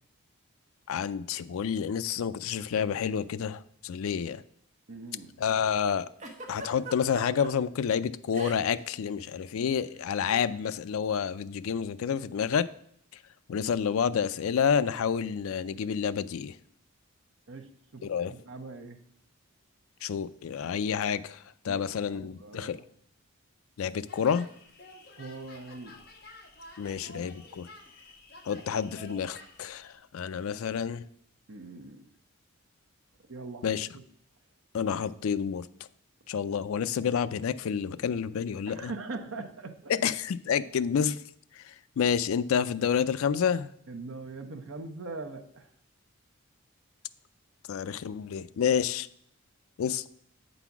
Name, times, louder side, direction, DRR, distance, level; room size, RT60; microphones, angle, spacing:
voice 1, 0.9-4.4 5.4-6.1 6.5-12.7 13.5-16.5 18.0-18.3 20.0-21.4 21.6-22.8 23.8-24.5 26.8-27.7 28.5-31.0 33.6-33.9 34.7-35.6 36.3-38.9 39.9-41.2 42.0-43.7 47.7-49.1 49.8-50.0, left 7 dB, 75° left, 0.4 m, -29 dB
voice 2, 4.9-5.3 17.5-19.0 21.7-22.8 25.2-26.0 26.8-27.2 31.5-32.0 33.3-34.0 38.7-40.0 43.9-45.7, right 3 dB, 70° right, 0.8 m, -42 dB
Giggle, 6.2-7.5 8.3-8.8 9.1-9.3 10.3-10.5, right 1 dB, 35° right, 1.0 m, -41 dB
sound 1, 24.1-29.9, left 2 dB, 45° left, 1.2 m, -50 dB
8.1 x 4.0 x 5.8 m
head